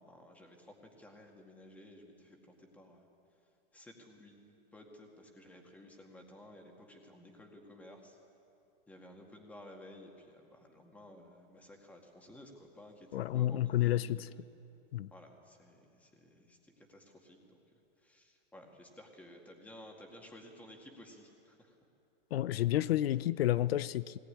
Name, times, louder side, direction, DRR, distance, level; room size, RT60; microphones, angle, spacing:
voice 1, 0.0-3.0 3.7-8.2 8.9-14.4 15.1-17.6 18.0-21.7, left 1 dB, 5° left, 2 dB, 2.0 m, -55 dB
voice 2, 13.1-14.3 14.9-15.1 22.3-24.2, left 13 dB, 80° left, 17 dB, 0.6 m, -30 dB
20.5 x 19.0 x 9.9 m, 2.6 s
supercardioid pair, 170°, 29 cm